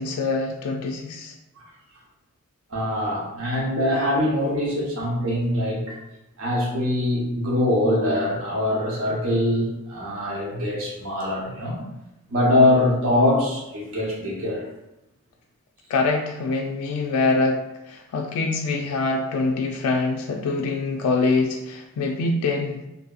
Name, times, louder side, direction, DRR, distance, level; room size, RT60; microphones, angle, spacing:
voice 1, 0.0-1.3 15.9-22.8, left 3 dB, 85° left, 2 dB, 0.3 m, -24 dB
voice 2, 2.7-6.0 6.4-11.8 12.3-14.7, left 1 dB, 70° right, -3 dB, 0.8 m, -23 dB
2.8 x 2.6 x 2.2 m, 0.92 s
head